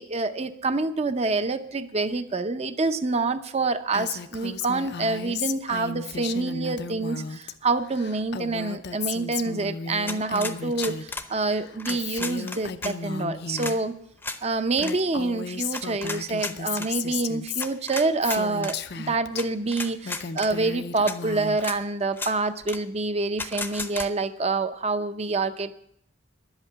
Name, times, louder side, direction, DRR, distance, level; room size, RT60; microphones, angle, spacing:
voice 1, 0.0-13.9 14.4-25.7, right 3 dB, 35° right, 10 dB, 0.6 m, -27 dB
Female speech woman speaking, 3.9-7.5 7.8-11.1 11.4-13.8 14.4-14.5 14.7-19.4 19.9-21.8, left 5 dB, 60° left, 0.7 m, -34 dB
sound 1, 10.1-11.3 11.8-12.9 13.6-13.8 14.2-14.4 14.8-14.9 15.7-16.9 17.6-18.8 19.4-19.5 19.7-20.5 21.1-21.2 21.6-21.8 22.1-22.3 22.7-22.8 23.4-24.1, left 3 dB, 10° left, 0.7 m, -34 dB
11.0 x 8.2 x 8.6 m, 0.72 s
head